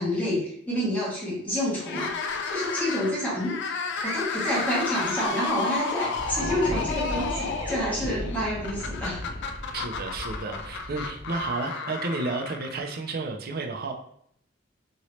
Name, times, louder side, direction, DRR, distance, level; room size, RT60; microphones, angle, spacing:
voice 1, 0.0-2.2 2.5-3.8 4.0-9.2, equal, 10° left, -7 dB, 1.3 m, -28 dB
sound 1, 1.8-13.1, left 5 dB, 60° left, 0.4 m, -33 dB
sound 2, 4.0-4.8 6.3-7.8, right 4 dB, 80° right, 0.8 m, -39 dB
Thunder, 6.1-11.5, left 1 dB, 80° left, 0.8 m, -36 dB
voice 2, 9.7-13.9, right 3 dB, 50° right, 3 dB, 0.5 m, -31 dB
2.9 x 2.7 x 3.1 m, 0.68 s
head